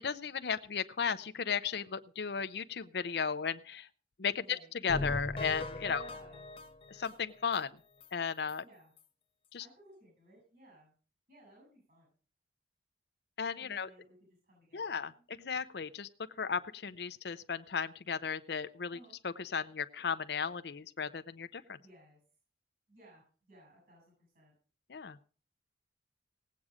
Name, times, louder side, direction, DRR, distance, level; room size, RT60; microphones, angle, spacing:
voice 1, 0.0-3.9 4.2-6.0 6.9-7.7 8.1-8.6 9.5-9.7 13.4-13.9 14.7-16.1 16.4-19.0 19.2-21.8 24.9-25.2, left 6 dB, 65° left, 11 dB, 0.6 m, -35 dB
voice 2, 4.4-4.7 5.8-6.4 8.6-8.9 9.6-10.9 11.3-12.1 13.6-14.2 14.4-15.2 18.9-19.2 21.7-22.2 22.9-24.5, right 1 dB, 50° right, -2 dB, 7.5 m, -59 dB
sound 1, 4.9-7.6 8.0-8.1 8.5-8.6 9.0-9.1, left 2 dB, 30° left, 1.1 m, -39 dB
18.0 x 8.5 x 4.9 m, 0.39 s
head